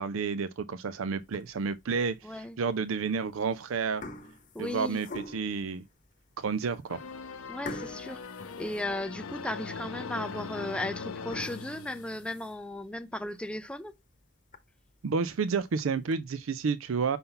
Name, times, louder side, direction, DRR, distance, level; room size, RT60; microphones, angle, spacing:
voice 1, 0.0-4.0 4.6-5.8 6.4-7.0 15.0-17.2, right 5 dB, 75° right, 0.4 m, -30 dB
sound 1, 1.2-1.7 2.3-2.4 3.3-3.5 3.8-5.7 6.3-6.4 6.7-6.8 7.6-9.4 9.8-9.9 10.4-10.5 11.1-12.7 13.2-13.3 13.7-13.8 14.1-14.2 14.5-14.6 15.5-16.1, left 2 dB, 35° left, 0.9 m, -45 dB
voice 2, 2.2-2.6 4.5-5.0 7.5-8.2 8.6-13.9, left 1 dB, 5° left, 0.4 m, -36 dB
sound 2, 6.9-12.5, left 5 dB, 85° left, 0.8 m, -41 dB
5.6 x 5.5 x 3.8 m
head